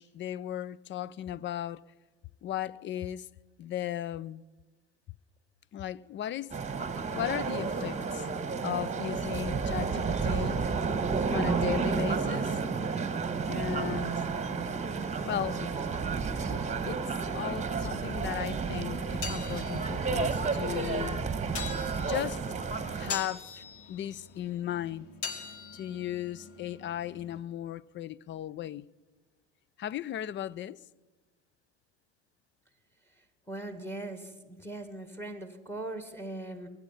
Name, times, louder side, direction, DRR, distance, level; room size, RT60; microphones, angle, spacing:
voice 1, 0.0-1.8 2.4-3.3 3.6-4.4 5.7-6.6 7.1-8.3 8.6-10.6 11.3-12.6 13.5-14.2 15.2-15.7 16.5-17.0 17.3-21.2 22.1-22.4 22.9-25.1 25.7-28.9 29.8-30.8, left 11 dB, 35° left, 0.4 m, -36 dB
sound 1, 6.5-23.1, right 5 dB, 20° right, 1.2 m, -31 dB
sound 2, 18.8-27.4, left 6 dB, 85° left, 1.6 m, -43 dB
voice 2, 33.5-36.7, right 2 dB, 5° left, 1.7 m, -40 dB
22.5 x 9.0 x 5.7 m
supercardioid pair, 85°, 36 cm